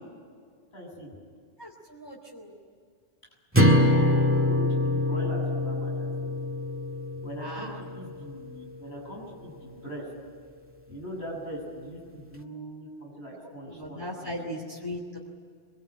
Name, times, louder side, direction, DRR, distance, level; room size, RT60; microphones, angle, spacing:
voice 1, 0.7-1.1 3.9-6.3 7.2-10.1 10.9-14.4, equal, 70° left, -2 dB, 8.2 m, -41 dB
voice 2, 1.6-2.6 7.4-7.8 13.7-15.2, equal, 20° left, -2 dB, 2.9 m, -38 dB
sound 1, 3.5-7.9, left 1 dB, 10° right, 1.9 m, -24 dB
24.5 x 23.5 x 9.0 m, 2.1 s
omnidirectional pair, 1.2 m